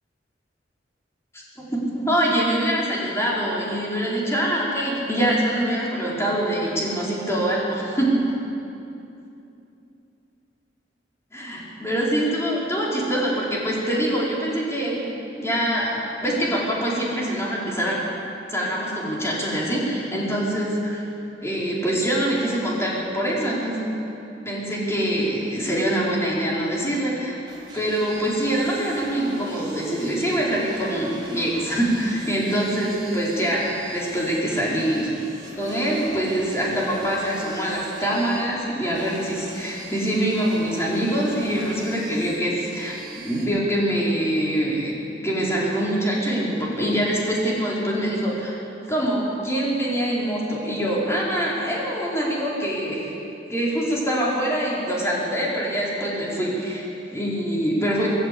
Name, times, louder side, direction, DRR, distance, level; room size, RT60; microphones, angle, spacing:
voice 1, 1.3-8.3 11.3-15.0 15.4-18.0 18.5-21.0 21.4-24.0 24.4-27.4 27.7-35.1 35.5-48.6 48.9-53.1 53.5-58.1, right 1 dB, 15° left, -5 dB, 4.7 m, -24 dB
sound 1, 27.5-43.4, right 2 dB, 25° right, 4.7 m, -42 dB
20.5 x 15.0 x 8.5 m, 2.8 s
head